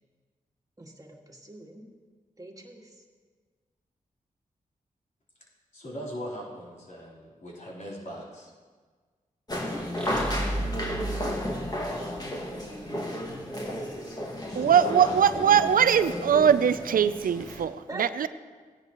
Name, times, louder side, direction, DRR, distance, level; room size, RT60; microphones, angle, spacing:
voice 1, 0.8-1.9 2.4-3.0 17.9-18.3, right 2 dB, 25° right, 1 dB, 1.9 m, -43 dB
voice 2, 5.7-8.5 14.2-16.2, equal, 55° left, -6 dB, 3.9 m, -40 dB
sound 1, 9.5-17.6, equal, 25° left, 2.0 m, -33 dB
sound 2, 10.0-12.6, right 1 dB, 5° left, 2.7 m, -34 dB
voice 3, 14.6-18.3, right 8 dB, 75° right, 14 dB, 0.5 m, -21 dB
17.0 x 10.5 x 3.0 m, 1.5 s
cardioid pair, 55°, 15 cm